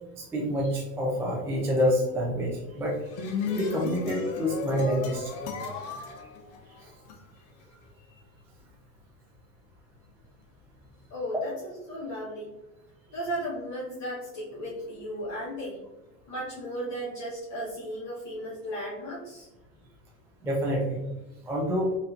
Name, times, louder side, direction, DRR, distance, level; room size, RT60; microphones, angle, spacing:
voice 1, 0.2-3.0 3.5-5.3 6.8-6.9 20.4-21.1 21.5-21.9, equal, 5° right, -3 dB, 0.3 m, -27 dB
sound 1, 2.8-7.2, left 4 dB, 55° left, 0.8 m, -34 dB
voice 2, 11.1-12.5 13.1-15.8 16.3-19.5, equal, 35° left, -6 dB, 1.2 m, -35 dB
4.1 x 2.6 x 2.5 m, 1.0 s
hypercardioid pair, 105°, 47 cm